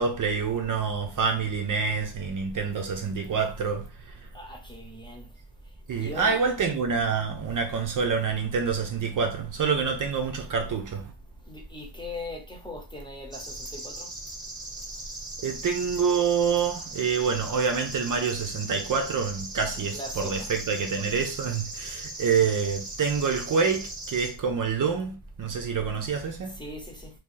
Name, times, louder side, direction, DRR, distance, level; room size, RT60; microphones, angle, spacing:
voice 1, 0.0-3.9 5.9-11.1 15.4-26.6, right 6 dB, 50° right, 0.7 m, -27 dB
voice 2, 4.3-5.3 6.0-6.4 11.5-14.1 19.7-20.5 26.6-27.1, left 1 dB, 10° left, 0.9 m, -39 dB
sound 1, 13.3-24.3, right 2 dB, 10° right, 1.1 m, -39 dB
2.8 x 2.7 x 3.8 m
cardioid pair, 100°, 42 cm